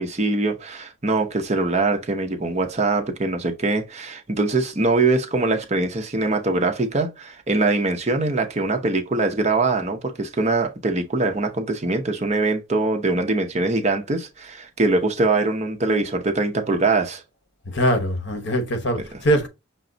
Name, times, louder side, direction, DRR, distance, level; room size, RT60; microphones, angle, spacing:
voice 1, 0.0-17.2, right 3 dB, 35° right, 0.7 m, -22 dB
voice 2, 17.6-19.5, equal, 55° left, 1.0 m, -22 dB
6.0 x 2.3 x 3.8 m
head